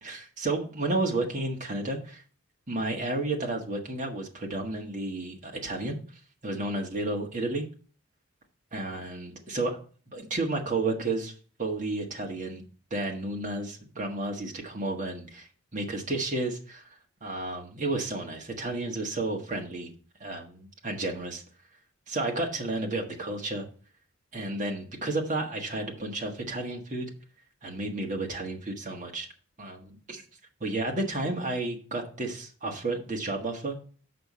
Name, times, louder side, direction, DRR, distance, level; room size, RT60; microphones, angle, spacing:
voice 1, 0.0-2.2 2.7-6.0 6.4-7.7 8.7-9.8 10.1-11.3 11.6-12.6 12.9-16.8 17.2-19.9 20.2-21.4 22.1-23.7 24.3-27.1 27.6-29.3 29.6-30.2 30.6-33.8, right 2 dB, 35° right, 1 dB, 1.5 m, -32 dB
6.8 x 5.5 x 5.4 m, 0.40 s
head